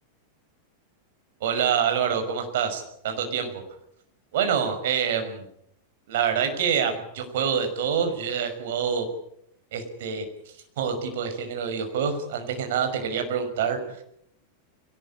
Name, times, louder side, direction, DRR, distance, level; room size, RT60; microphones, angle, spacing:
voice 1, 1.4-3.6 4.3-5.5 6.1-9.1 9.7-10.3 10.8-14.0, right 7 dB, 55° right, 6 dB, 5.9 m, -26 dB
22.5 x 19.0 x 8.7 m, 0.72 s
figure-of-eight pair, 90°, 0 cm